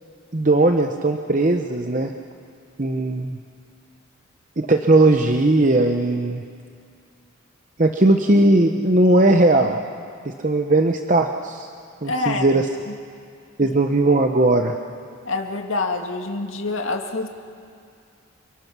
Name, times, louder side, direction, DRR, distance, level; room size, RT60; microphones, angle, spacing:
voice 1, 0.3-2.1 2.8-3.4 4.6-6.4 7.8-9.8 10.4-11.7 12.0-12.7 13.6-14.8, right 2 dB, 40° right, 5 dB, 0.8 m, -18 dB
voice 2, 12.1-12.5 13.6-13.7 15.3-17.3, left 3 dB, 85° left, 3 dB, 2.0 m, -26 dB
28.0 x 24.5 x 6.2 m, 2.3 s
head